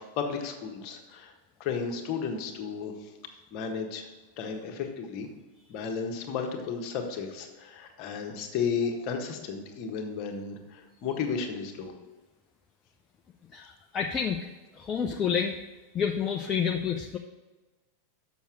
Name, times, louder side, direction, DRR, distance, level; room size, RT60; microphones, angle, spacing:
voice 1, 0.0-1.3 1.6-3.1 3.5-4.1 4.4-5.3 5.7-11.9, left 6 dB, 40° left, 3 dB, 1.3 m, -33 dB
voice 2, 13.5-14.4 14.8-15.6 15.9-17.2, left 7 dB, 25° left, 3 dB, 0.6 m, -29 dB
7.1 x 6.2 x 6.0 m, 1.2 s
figure-of-eight pair, 90°, 0 cm